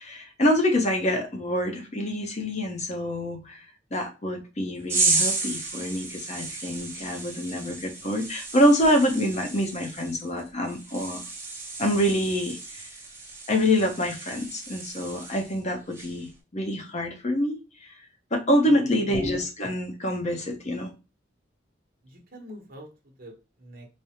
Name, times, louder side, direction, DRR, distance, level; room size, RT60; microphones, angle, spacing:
voice 1, 0.0-3.7 3.9-11.2 11.8-12.9 13.5-17.6 18.3-20.9, equal, 40° left, 5 dB, 0.7 m, -26 dB
sound 1, 4.9-15.6 15.9-16.3, right 3 dB, 15° right, 0.9 m, -32 dB
voice 2, 18.6-19.1 22.0-22.9 23.2-23.9, equal, 50° right, 1 dB, 0.9 m, -45 dB
4.9 x 2.0 x 2.8 m, 0.30 s
head